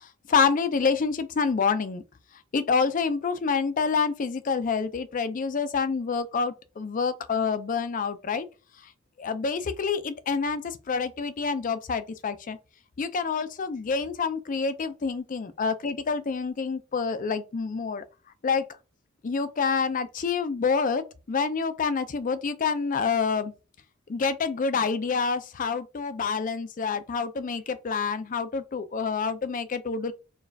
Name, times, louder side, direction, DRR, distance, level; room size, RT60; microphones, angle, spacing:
voice 1, 0.3-2.0 2.5-8.4 9.2-12.6 13.0-18.0 18.4-18.6 19.2-23.5 24.1-30.1, left 5 dB, 40° left, 0.4 m, -27 dB
4.5 x 2.3 x 3.3 m
head